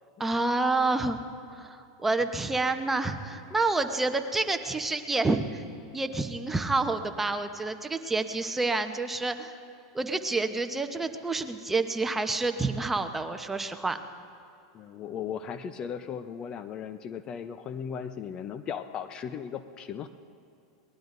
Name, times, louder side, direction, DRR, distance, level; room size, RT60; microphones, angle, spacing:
voice 1, 0.2-1.2 1.5-5.6 5.9-9.6 9.9-14.0, right 3 dB, 10° right, 7 dB, 1.0 m, -28 dB
voice 2, 14.7-20.1, left 7 dB, 35° left, 11 dB, 0.7 m, -37 dB
23.5 x 19.5 x 2.7 m, 2.6 s
hypercardioid pair, 100°, 2 cm